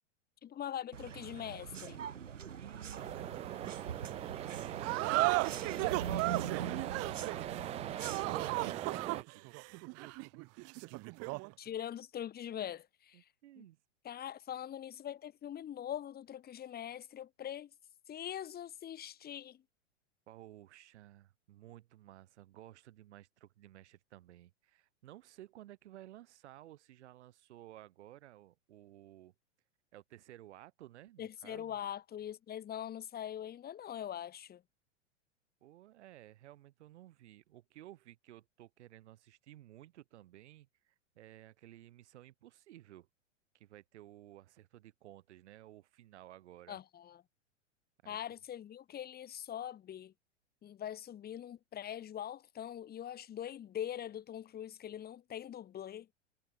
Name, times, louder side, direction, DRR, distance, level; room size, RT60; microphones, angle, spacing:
voice 1, 0.4-2.0 11.6-12.9 13.6-13.7 14.0-17.7 18.1-19.6 31.2-34.6 46.7-47.2 48.0-50.1 50.6-56.1, left 10 dB, 25° left, 2.6 m, -42 dB
sound 1, 0.9-8.7, right 8 dB, 85° right, 2.8 m, -43 dB
voice 2, 2.6-7.1 8.6-9.5 10.0-10.1 13.1-13.8 20.3-29.3 29.9-31.8 35.6-43.1 43.5-46.8 48.0-48.4, right 14 dB, 65° right, 5.3 m, -55 dB
sound 2, 2.9-9.2, right 12 dB, 15° right, 0.5 m, -42 dB
sound 3, 4.8-11.5, right 27 dB, 40° right, 1.6 m, -35 dB
hypercardioid pair, 110°, 37 cm